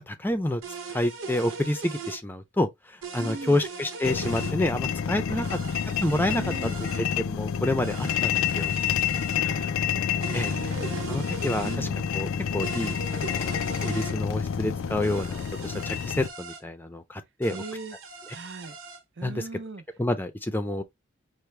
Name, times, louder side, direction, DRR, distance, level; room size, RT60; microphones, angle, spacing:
voice 1, 0.1-0.6 0.9-5.5 6.0-6.4 7.0-8.7 10.3-10.5 11.1-11.9 12.1-17.6 18.3-18.4 19.2-19.4 20.0-20.8, left 1 dB, 10° left, 0.5 m, -28 dB
sound 1, 0.6-2.2 3.0-4.6 5.4-7.0 7.8-9.4 10.2-11.8 12.6-14.1 15.0-16.6 17.4-19.0, right 4 dB, 90° right, 1.1 m, -40 dB
voice 2, 3.2-3.7 5.3-5.7 6.3-6.8 9.4-12.1 17.5-18.0 18.3-18.8 19.2-19.8, right 3 dB, 60° right, 0.8 m, -40 dB
sound 2, 4.0-16.3, left 7 dB, 85° left, 0.4 m, -29 dB
5.7 x 2.1 x 3.3 m
head